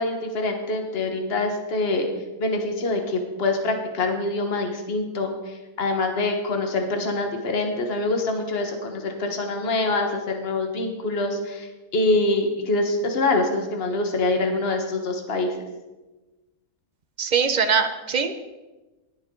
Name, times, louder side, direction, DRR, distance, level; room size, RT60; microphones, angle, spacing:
voice 1, 0.0-2.1 2.4-15.6, left 2 dB, 45° left, 4 dB, 1.5 m, -25 dB
voice 2, 17.2-18.3, right 6 dB, 40° right, 9 dB, 0.7 m, -22 dB
19.0 x 7.2 x 3.8 m, 1.1 s
omnidirectional pair, 1.6 m